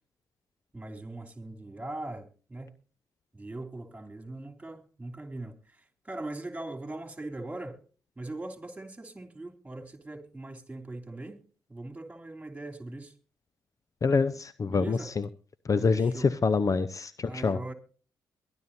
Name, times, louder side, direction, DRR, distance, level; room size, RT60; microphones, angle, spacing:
voice 1, 0.7-2.7 3.3-7.8 8.2-11.4 11.7-13.1 14.7-15.1 15.7-16.3 17.2-17.7, right 2 dB, 15° right, 3.0 m, -40 dB
voice 2, 14.0-15.3 15.7-17.6, left 4 dB, 40° left, 0.7 m, -26 dB
22.5 x 11.5 x 2.7 m
hypercardioid pair, 40°, 9 cm